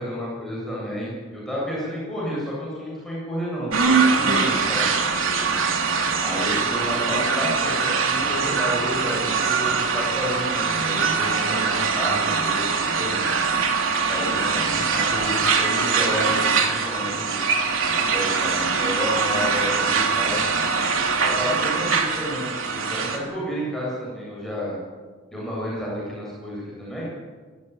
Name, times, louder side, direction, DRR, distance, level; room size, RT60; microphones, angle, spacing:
voice 1, 0.0-3.7 4.1-4.9 5.2-5.4 6.2-13.6 14.1-17.3 17.9-20.4 21.2-24.8 25.3-27.1, equal, ahead, -6 dB, 7.8 m, -31 dB
sound 1, 3.7-23.2, right 5 dB, 85° right, 3.0 m, -22 dB
23.5 x 14.5 x 9.8 m, 1.5 s
head